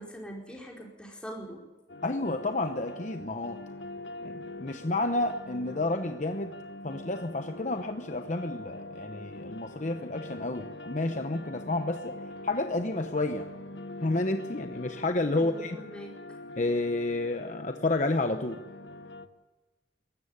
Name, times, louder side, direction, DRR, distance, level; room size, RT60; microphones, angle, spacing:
voice 1, 0.0-1.6 15.4-16.4, right 1 dB, 5° left, -2 dB, 4.7 m, -43 dB
sound 1, 1.9-19.3, left 2 dB, 80° left, 1.3 m, -43 dB
voice 2, 2.0-3.6 4.2-6.5 6.8-12.2 12.4-13.5 14.0-15.8 16.6-18.6, left 2 dB, 40° left, 7 dB, 0.9 m, -30 dB
22.5 x 13.5 x 9.8 m, 1.1 s
head